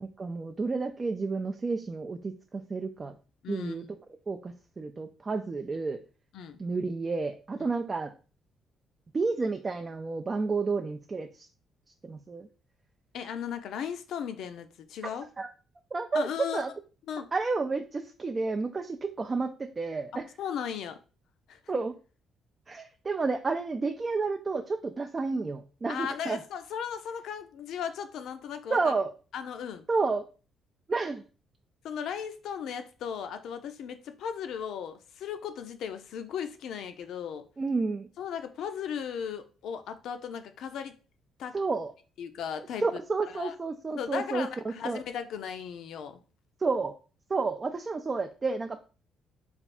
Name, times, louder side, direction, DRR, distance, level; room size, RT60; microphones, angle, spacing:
voice 1, 0.0-3.1 3.5-3.8 4.3-6.0 6.6-8.1 9.1-11.5 12.0-12.5 15.4-15.5 15.9-16.7 17.3-20.3 21.7-22.0 22.7-26.4 28.7-29.1 29.9-30.3 30.9-31.2 37.6-38.1 41.5-41.9 42.8-45.0 46.6-47.0 47.3-48.8, right 4 dB, 30° right, 0.4 m, -31 dB
voice 2, 3.4-3.9 6.3-6.6 7.6-7.7 13.1-15.3 16.1-16.6 17.1-17.3 20.4-21.0 21.5-21.6 25.9-28.9 29.3-29.9 31.8-37.5 38.2-40.9 41.4-41.6 42.2-42.8 43.3-43.5 44.0-46.2, left 8 dB, 75° left, 0.5 m, -36 dB
3.4 x 2.4 x 4.2 m
cardioid pair, 90°, 0 cm